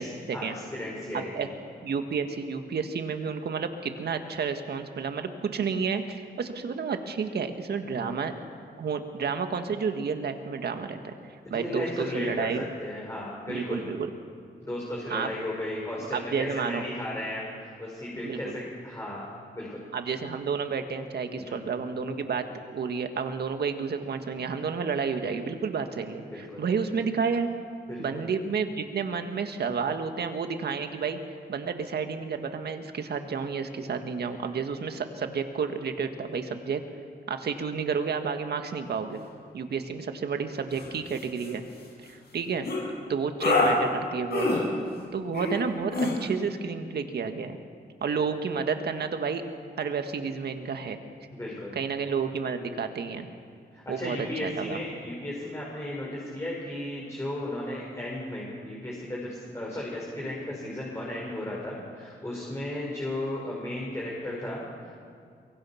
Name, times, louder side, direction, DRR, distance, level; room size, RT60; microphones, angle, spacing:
voice 1, 0.0-1.5 8.0-8.1 11.5-12.5 12.8-13.9 14.6-19.3 19.5-19.8 21.3-21.6 26.3-26.6 27.9-28.2 51.3-51.8 53.7-65.0, left 1 dB, 15° left, -4 dB, 5.5 m, -35 dB
voice 2, 1.1-1.5 1.8-8.3 8.8-11.1 11.5-12.6 13.5-14.1 15.1-15.3 16.1-16.8 18.2-18.5 19.9-22.5 22.7-27.5 28.0-31.2 31.5-36.8 37.3-39.2 39.5-41.6 42.0-42.7 43.1-44.5 45.1-47.6 48.0-49.4 49.8-51.0 51.8-53.3 53.9-54.8, right 5 dB, 70° right, 7 dB, 1.8 m, -31 dB
sound 1, 40.7-40.9 41.2-41.5 42.6-42.8 43.4-43.7 44.3-44.6 45.3-45.6 45.9-46.1, left 2 dB, 70° left, 7.2 m, -25 dB
23.5 x 22.5 x 5.9 m, 2.2 s
cardioid pair, 95°, 17 cm